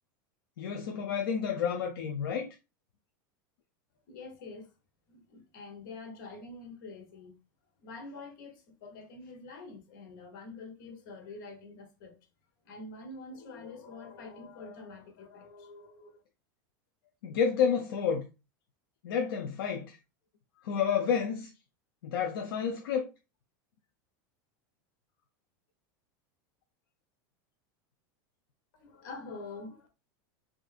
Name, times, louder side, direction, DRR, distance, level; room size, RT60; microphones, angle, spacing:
voice 1, 0.6-2.5 17.2-18.2 19.0-20.0 20.6-21.5 22.0-23.1, left 7 dB, 90° left, 0.5 m, -30 dB
voice 2, 4.1-4.7 5.1-7.3 7.8-12.2 12.6-16.2 28.7-29.9, left 3 dB, 70° left, 1.0 m, -46 dB
3.2 x 2.6 x 2.4 m
supercardioid pair, 130°, 12 cm